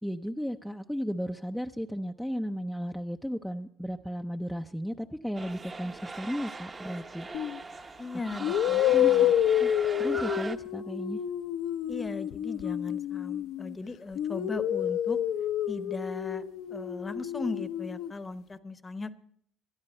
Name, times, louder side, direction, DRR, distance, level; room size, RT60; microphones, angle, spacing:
voice 1, 0.0-7.3 8.8-9.7 10.0-11.2, equal, ahead, 5 dB, 0.5 m, -34 dB
sound 1, 5.3-10.5, right 3 dB, 25° right, 0.9 m, -40 dB
sound 2, 7.3-7.6 8.4-13.7 14.2-18.1, left 11 dB, 70° left, 0.7 m, -28 dB
voice 2, 8.0-9.3 11.9-15.2 15.7-19.2, left 3 dB, 20° left, 12 dB, 0.9 m, -38 dB
20.0 x 12.5 x 4.3 m, 0.65 s
cardioid pair, 105°, 0 cm